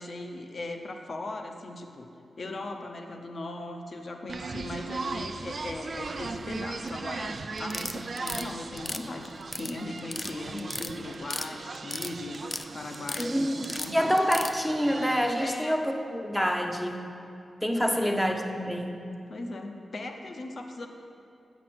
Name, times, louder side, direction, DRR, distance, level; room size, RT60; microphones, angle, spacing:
voice 1, 0.0-2.1 2.4-12.4 12.7-14.1 15.4-15.9 17.8-18.2 19.3-20.9, left 2 dB, 55° left, 4 dB, 0.8 m, -38 dB
sound 1, 4.3-15.5, right 3 dB, 55° right, 0.4 m, -38 dB
sound 2, 7.6-8.4 8.8-9.7 10.0-10.3 10.6-11.5 11.7-12.7 12.9-13.3 13.6-14.5, left 3 dB, 35° left, 0.4 m, -35 dB
voice 2, 13.2-17.0 17.6-19.0, equal, 5° left, 4 dB, 0.7 m, -27 dB
7.7 x 6.0 x 6.0 m, 2.6 s
cardioid pair, 85°, 0 cm